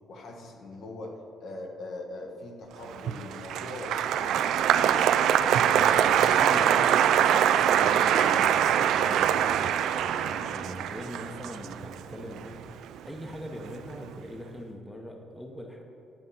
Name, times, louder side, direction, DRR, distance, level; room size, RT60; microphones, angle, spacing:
voice 1, 0.1-4.8, left 2 dB, 65° left, 2 dB, 1.1 m, -41 dB
Applause, 2.9-13.3 13.6-14.2, right 9 dB, 75° right, 0.3 m, -24 dB
voice 2, 5.6-15.8, equal, 5° left, 2 dB, 0.8 m, -42 dB
10.5 x 4.3 x 5.4 m, 2.8 s
cardioid pair, 115°, 0 cm